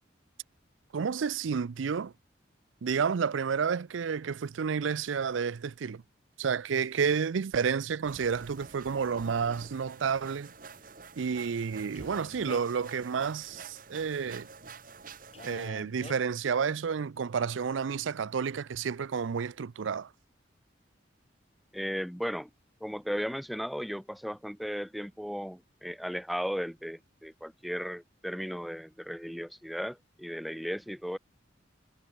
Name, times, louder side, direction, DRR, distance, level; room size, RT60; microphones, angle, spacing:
voice 1, 0.9-2.1 2.8-6.0 6.4-10.5 11.2-14.5 15.4-20.1, right 6 dB, 85° right, 0.5 m, -30 dB
sound 1, 8.0-15.7, right 4 dB, 45° right, 1.8 m, -48 dB
Male speech man speaking, 12.0-12.8 15.3-16.2, left 2 dB, 30° left, 2.0 m, -47 dB
voice 2, 21.7-22.5 22.8-31.2, equal, ahead, 0.5 m, -36 dB
head